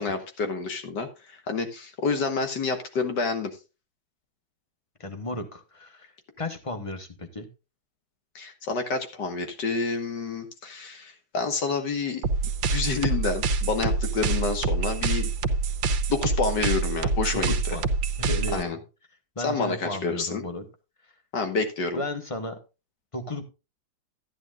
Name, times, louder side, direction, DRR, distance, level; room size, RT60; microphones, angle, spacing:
voice 1, 0.0-3.6 8.4-12.2 12.7-15.3 16.1-17.8 18.5-18.8 19.4-20.4 21.3-22.0, left 4 dB, 65° left, 7 dB, 2.2 m, -28 dB
voice 2, 5.0-7.5 17.3-17.9 18.2-18.8 19.3-20.7 21.9-22.6 23.1-23.4, left 2 dB, 20° left, 7 dB, 1.1 m, -34 dB
sound 1, 12.2-18.6, right 4 dB, 80° right, 1.7 m, -26 dB
13.0 x 10.0 x 2.5 m, 0.28 s
omnidirectional pair, 2.0 m